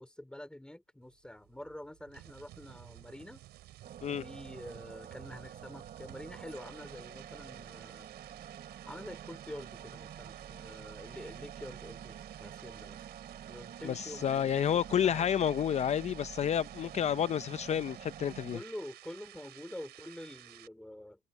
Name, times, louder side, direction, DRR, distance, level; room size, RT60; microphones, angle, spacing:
voice 1, 0.0-3.4 4.1-8.1 8.9-13.1 13.5-15.3 18.5-21.3, left 1 dB, 5° left, 3.0 m, -47 dB
sound 1, 1.0-20.7, right 15 dB, 80° right, 4.8 m, -54 dB
sound 2, 3.8-18.6, right 9 dB, 50° right, 7.4 m, -48 dB
voice 2, 13.8-18.6, left 9 dB, 40° left, 0.6 m, -30 dB
cardioid pair, 110°, 17 cm